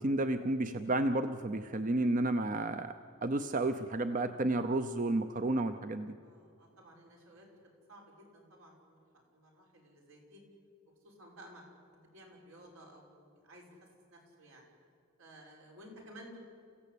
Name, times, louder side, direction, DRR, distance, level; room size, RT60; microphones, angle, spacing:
voice 1, 0.0-2.9 3.2-6.2, right 2 dB, 40° right, 10 dB, 0.7 m, -31 dB
voice 2, 6.2-7.6 7.9-9.0 9.3-10.4 11.0-11.6 12.1-13.8 14.1-14.6 15.2-16.4, equal, 85° right, -1 dB, 6.0 m, -55 dB
29.5 x 15.5 x 8.6 m, 2.3 s
head